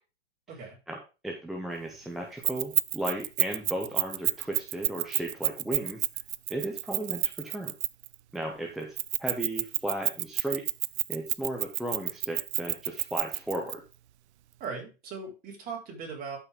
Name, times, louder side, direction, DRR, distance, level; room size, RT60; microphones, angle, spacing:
voice 1, 1.2-6.0 6.5-7.7 8.3-10.6 11.1-13.8, right 1 dB, ahead, 0 dB, 0.3 m, -35 dB
Keys jangling, 2.4-8.1 9.0-13.7, right 15 dB, 65° right, 0.6 m, -29 dB
voice 2, 14.6-16.4, right 5 dB, 25° right, -2 dB, 4.2 m, -39 dB
12.0 x 5.8 x 3.5 m, 0.30 s
hypercardioid pair, 145°, 36 cm